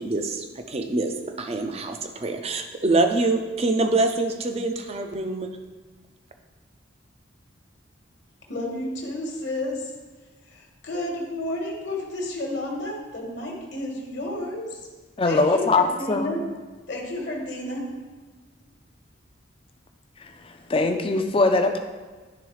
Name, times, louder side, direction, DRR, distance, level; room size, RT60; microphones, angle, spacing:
voice 1, 0.0-5.5, right 2 dB, 30° right, 6 dB, 0.5 m, -25 dB
voice 2, 8.5-9.9 10.4-14.9 15.2-16.4 16.9-17.8, left 1 dB, 60° left, 0 dB, 1.2 m, -31 dB
voice 3, 15.2-16.3 20.7-21.8, left 3 dB, 30° left, 6 dB, 0.5 m, -21 dB
10.0 x 3.8 x 3.2 m, 1.3 s
head